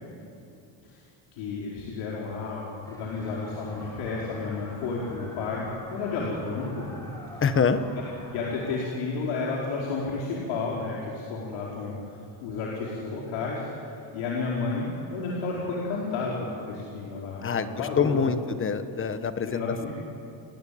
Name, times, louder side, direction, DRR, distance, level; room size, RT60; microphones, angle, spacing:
voice 1, 1.3-5.6 5.9-7.1 7.3-7.4 7.9-8.0 8.3-11.9 12.4-13.6 14.1-16.4 16.7-18.2 19.4-19.9, left 4 dB, 80° left, -4 dB, 5.0 m, -31 dB
sound 1, 2.8-8.7, left 1 dB, 5° left, 4.6 m, -44 dB
voice 2, 7.4-7.8 17.4-19.9, left 6 dB, 25° left, 11 dB, 1.2 m, -26 dB
29.5 x 19.5 x 8.7 m, 2.6 s
cardioid pair, 145°, 48 cm